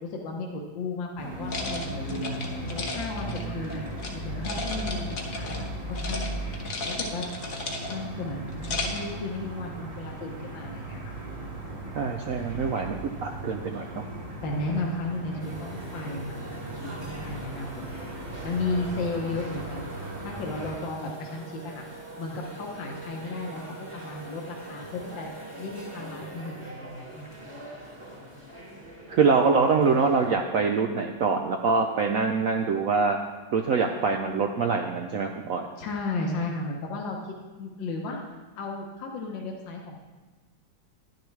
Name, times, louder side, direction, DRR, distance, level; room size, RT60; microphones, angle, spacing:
voice 1, 0.0-2.4 2.7-3.8 4.1-6.4 6.9-7.3 7.9-11.1 14.4-17.9 18.4-20.0 20.2-21.8 22.2-23.6 23.9-25.3 25.6-27.3 35.8-37.2 37.6-38.2 38.6-40.0, left 3 dB, 75° left, 0 dB, 1.7 m, -34 dB
sound 1, 1.2-20.7, right 1 dB, 60° right, 2.7 m, -37 dB
sound 2, 1.5-4.1 4.4-5.7 5.9-6.3 6.5-8.1 8.5-9.1, left 2 dB, 50° left, 1.4 m, -34 dB
voice 2, 11.9-14.0 29.1-33.2 33.5-35.7, right 4 dB, 80° right, 4 dB, 0.7 m, -24 dB
sound 3, 15.4-30.3, right 1 dB, 20° right, 1.3 m, -43 dB
10.5 x 10.5 x 3.2 m, 1.3 s
omnidirectional pair, 2.1 m